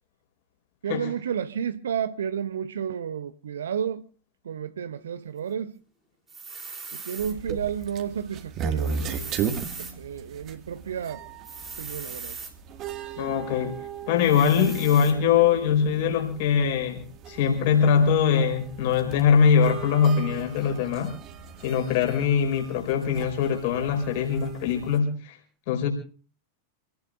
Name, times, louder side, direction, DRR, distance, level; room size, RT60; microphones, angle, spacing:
voice 1, 0.8-4.1 4.4-5.8 6.9-11.2 11.8-12.4, right 8 dB, 65° right, 0.8 m, -32 dB
sound 1, 6.3-7.4 8.8-10.0 11.4-12.5 14.2-15.2, right 5 dB, 20° right, 3.6 m, -39 dB
sound 2, 7.2-25.0, right 6 dB, 35° right, 2.0 m, -37 dB
voice 2, 13.2-13.8 14.1-21.1 21.6-25.4 25.7-25.9, left 7 dB, 50° left, 4.8 m, -22 dB
28.0 x 18.0 x 2.5 m
figure-of-eight pair, 90°, 0 cm